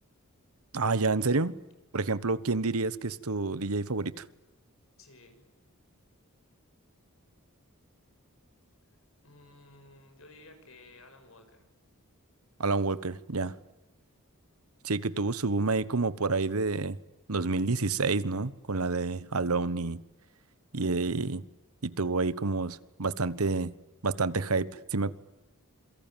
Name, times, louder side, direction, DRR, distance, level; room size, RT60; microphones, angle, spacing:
voice 1, 0.7-1.6 1.9-4.2 12.6-13.6 14.8-17.0 17.3-20.0 20.7-21.5 21.8-23.7 24.0-25.1, right 3 dB, 85° right, 1.2 m, -29 dB
voice 2, 5.0-5.4 9.2-11.7, left 2 dB, 70° left, 6.6 m, -54 dB
27.5 x 23.0 x 9.1 m
head